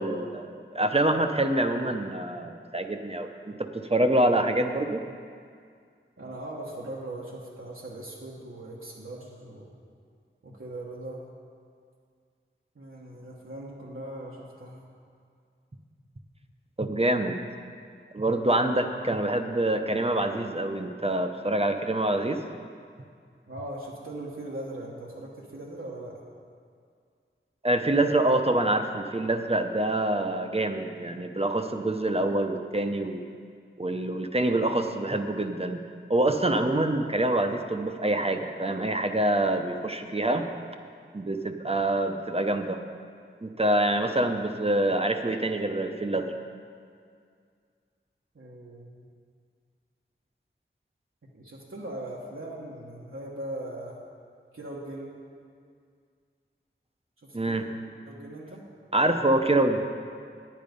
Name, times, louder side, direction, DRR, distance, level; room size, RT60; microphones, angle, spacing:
voice 1, 0.0-5.0 16.8-17.4 18.1-22.4 27.6-33.2 33.8-35.8 36.1-40.5 41.1-42.8 43.4-46.3 57.3-57.6 58.9-59.8, right 1 dB, 30° right, 6 dB, 0.7 m, -26 dB
voice 2, 6.2-9.7 10.4-11.2 12.7-14.8 23.5-26.2 41.6-41.7 48.3-49.1 51.3-54.0 54.5-55.1 57.2-57.6 58.0-58.6, right 1 dB, 85° right, -5 dB, 1.3 m, -40 dB
10.0 x 8.7 x 5.2 m, 2.2 s
wide cardioid pair, 50°, 21 cm